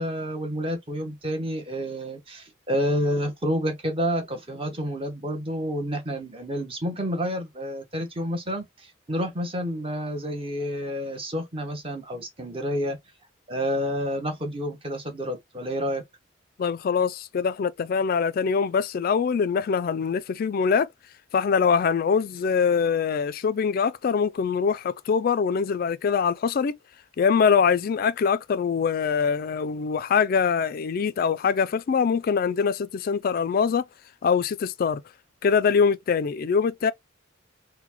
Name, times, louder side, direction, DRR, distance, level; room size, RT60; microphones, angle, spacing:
voice 1, 0.0-13.0 13.5-16.0, equal, 25° right, 0.8 m, -29 dB
voice 2, 16.6-20.9 21.3-26.7 27.2-33.8 34.2-35.0 35.4-36.9, left 6 dB, 45° left, 0.3 m, -23 dB
3.8 x 2.1 x 2.9 m
head